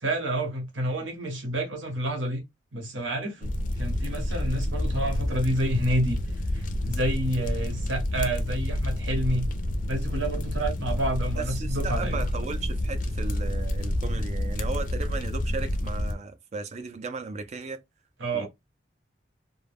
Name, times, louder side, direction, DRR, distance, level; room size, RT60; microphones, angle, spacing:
voice 1, 0.0-2.4 2.7-3.5 3.8-6.2 6.5-9.5 9.9-12.3 18.2-18.5, right 1 dB, 85° right, 0.9 m, -29 dB
sound 1, 3.4-16.1, left 1 dB, 45° left, 0.4 m, -29 dB
voice 2, 11.4-17.8 18.3-18.5, right 4 dB, 35° right, 0.4 m, -36 dB
2.2 x 2.1 x 3.2 m
head